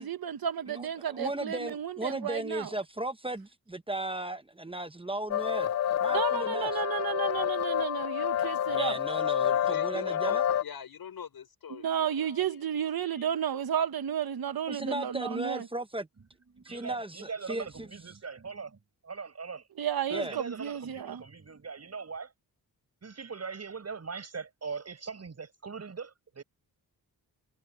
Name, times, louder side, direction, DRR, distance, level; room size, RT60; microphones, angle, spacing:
voice 1, 0.0-2.7 6.1-8.9 11.7-15.7 19.8-21.2, right 9 dB, 65° right, 1.4 m, -32 dB
voice 2, 0.7-5.7 6.0-6.8 8.7-10.4 14.7-16.1 16.6-17.9 20.1-20.4, right 1 dB, 15° right, 0.9 m, -36 dB
sound 1, 5.3-10.6, left 10 dB, 45° left, 0.4 m, -28 dB
voice 3, 9.1-12.9 13.1-13.3, left 7 dB, 65° left, 5.4 m, -45 dB
voice 4, 16.5-19.7 20.1-22.3 23.0-26.4, right 5 dB, 40° right, 6.9 m, -40 dB
wide cardioid pair, 130°, 39 cm